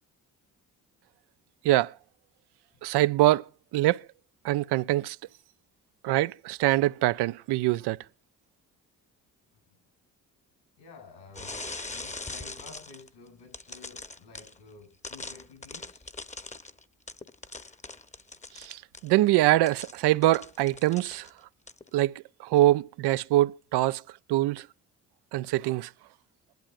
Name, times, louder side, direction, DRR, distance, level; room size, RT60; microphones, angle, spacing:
voice 1, 2.8-3.4 3.7-4.0 4.4-5.2 6.0-8.0 18.6-21.3 21.9-22.1 22.4-24.0 24.3-24.6 25.3-25.9, right 16 dB, 65° right, 0.5 m, -24 dB
voice 2, 10.8-16.1, left 4 dB, 80° left, 6.6 m, -51 dB
sound 1, 11.4-13.1 13.5-14.6 15.0-19.1 19.7-21.4 21.7-21.9, left 3 dB, 15° left, 1.0 m, -41 dB
21.5 x 12.0 x 2.5 m
hypercardioid pair, 45°, 43 cm